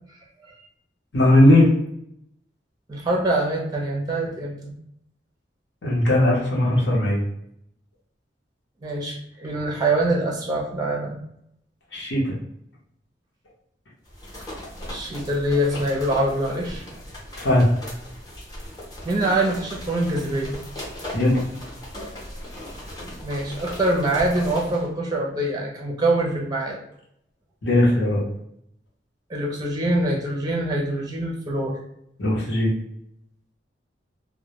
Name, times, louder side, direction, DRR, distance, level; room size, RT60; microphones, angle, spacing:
voice 1, 1.1-1.7 5.8-7.2 11.9-12.4 17.4-17.7 21.1-21.4 27.6-28.2 32.2-32.7, left 1 dB, 80° left, -4 dB, 0.8 m, -18 dB
voice 2, 2.9-4.7 8.8-11.2 14.9-16.8 19.0-20.6 23.2-26.8 29.3-31.8, right 1 dB, 20° right, -1 dB, 0.4 m, -24 dB
sound 1, 14.1-24.9, left 1 dB, 20° left, 0.6 m, -38 dB
2.1 x 2.1 x 2.8 m, 0.75 s
head